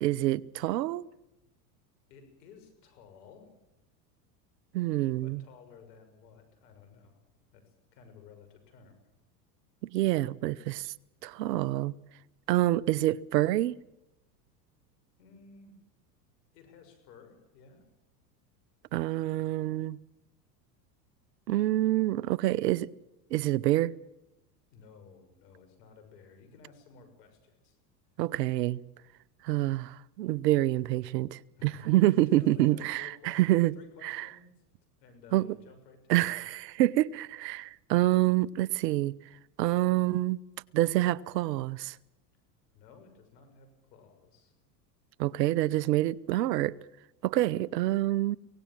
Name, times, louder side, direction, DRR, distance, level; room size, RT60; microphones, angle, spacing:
voice 1, 0.0-1.0 4.7-5.4 9.9-10.9 11.2-11.9 12.5-13.8 18.9-20.0 21.5-22.9 23.3-23.9 28.2-28.8 29.4-33.7 34.0-34.3 35.3-35.5 36.1-39.1 39.6-40.4 40.7-42.0 45.2-46.7 47.2-48.4, right 16 dB, 80° right, 0.9 m, -27 dB
voice 2, 2.1-3.5 5.2-7.2 7.5-9.0 15.2-15.8 16.5-17.9 24.7-27.8 31.6-34.5 35.0-36.5 42.7-44.5, left 5 dB, 75° left, 6.6 m, -55 dB
23.5 x 18.5 x 7.5 m
hypercardioid pair, 100°, 48 cm